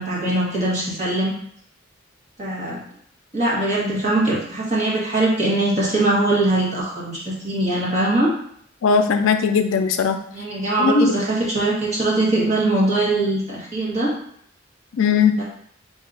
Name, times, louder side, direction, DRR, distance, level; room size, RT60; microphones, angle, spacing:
voice 1, 0.0-1.3 2.4-2.8 3.3-8.3 10.3-14.1 15.4-15.5, right 2 dB, 35° right, -6 dB, 1.5 m, -21 dB
voice 2, 8.8-10.2 10.8-11.1 14.9-15.3, left 5 dB, 85° left, 8 dB, 0.4 m, -18 dB
4.0 x 2.8 x 3.9 m, 0.67 s
head